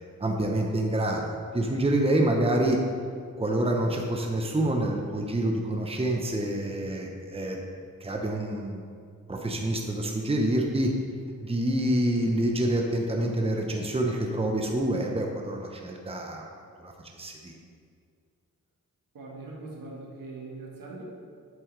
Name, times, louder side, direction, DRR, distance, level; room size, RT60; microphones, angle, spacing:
voice 1, 0.2-2.8 3.4-7.6 8.0-8.8 9.3-10.9 11.4-16.5 16.8-16.9 17.2-17.5, right 1 dB, 15° right, 1 dB, 1.0 m, -27 dB
voice 2, 19.1-21.0, right 3 dB, 70° right, -3 dB, 1.7 m, -41 dB
7.8 x 7.5 x 3.3 m, 2.2 s
cardioid pair, 50°, 34 cm